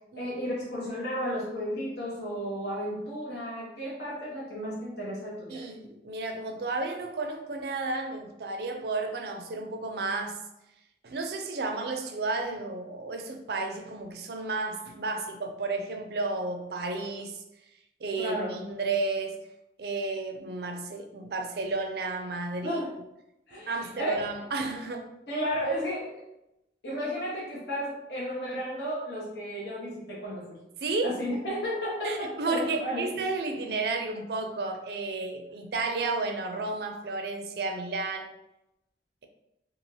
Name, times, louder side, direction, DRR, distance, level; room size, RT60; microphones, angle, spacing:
voice 1, 0.2-5.6 18.2-18.6 22.6-22.9 23.5-24.2 25.3-26.2 26.8-30.6 31.0-33.1, equal, 70° left, -6 dB, 0.8 m, -33 dB
voice 2, 5.5-10.4 11.0-17.4 18.0-19.4 19.8-22.8 23.7-25.0 30.8-31.1 32.0-38.3, right 3 dB, 60° right, 5 dB, 0.4 m, -32 dB
2.7 x 2.4 x 3.1 m, 0.87 s
head